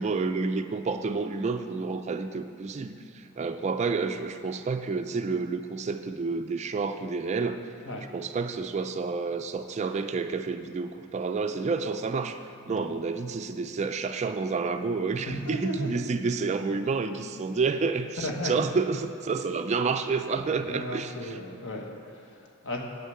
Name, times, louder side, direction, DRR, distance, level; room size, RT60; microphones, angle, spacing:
voice 1, 0.0-7.6 8.1-12.4 12.7-21.1, right 4 dB, 30° right, 8 dB, 0.3 m, -29 dB
voice 2, 15.3-16.1 18.2-18.5 20.3-22.8, equal, 60° left, 0 dB, 1.2 m, -35 dB
8.2 x 6.5 x 7.7 m, 2.4 s
head